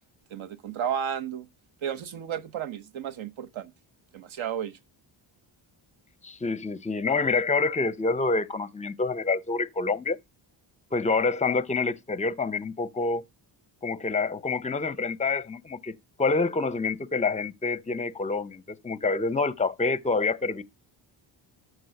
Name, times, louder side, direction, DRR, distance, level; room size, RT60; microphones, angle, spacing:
voice 1, 0.3-1.5 1.8-3.7 4.1-4.8, right 9 dB, 75° right, 1.1 m, -33 dB
voice 2, 6.2-10.2 10.9-13.2 13.8-15.9 16.2-20.6, left 4 dB, 15° left, 0.5 m, -27 dB
13.0 x 4.7 x 5.8 m
cardioid pair, 105°, 48 cm